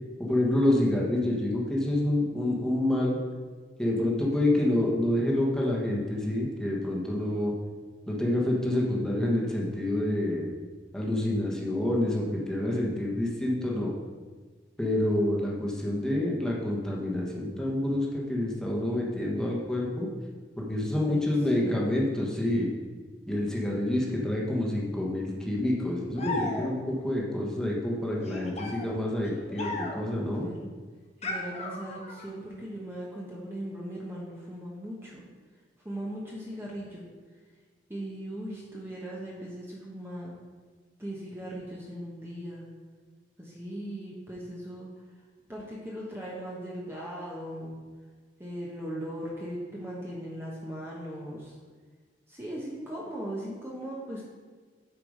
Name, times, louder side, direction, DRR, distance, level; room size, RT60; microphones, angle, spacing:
voice 1, 0.2-3.2 3.8-7.5 8.1-10.5 10.9-13.9 14.8-20.1 20.6-22.7 23.3-30.4, left 1 dB, 5° left, -4 dB, 1.3 m, -27 dB
voice 2, 21.5-21.8 30.4-30.7 31.2-35.3 35.8-37.0 37.9-40.3 41.0-42.7 43.4-44.9 45.5-47.8 48.4-51.5 52.3-54.2, right 1 dB, 15° right, -5 dB, 1.1 m, -38 dB
sound 1, 26.2-27.0 28.2-30.2 31.2-32.3, left 2 dB, 35° left, 1.0 m, -36 dB
8.5 x 4.8 x 5.1 m, 1.5 s
head